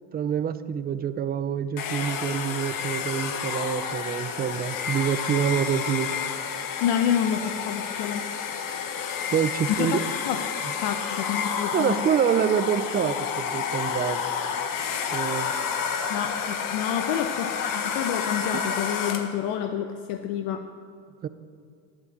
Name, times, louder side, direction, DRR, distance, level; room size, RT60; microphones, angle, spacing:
voice 1, 0.1-6.1 9.3-10.0 11.7-14.2 15.1-15.5 18.5-18.6 21.2-21.3, right 8 dB, 20° right, 13 dB, 0.4 m, -26 dB
Domestic sounds home sounds, 1.8-19.4, left 7 dB, 40° left, 1.2 m, -30 dB
voice 2, 6.8-8.3 9.8-10.4 10.8-12.0 16.1-20.6, left 9 dB, 60° left, 7 dB, 0.8 m, -28 dB
11.5 x 8.7 x 8.7 m, 2.2 s
supercardioid pair, 110°, 48 cm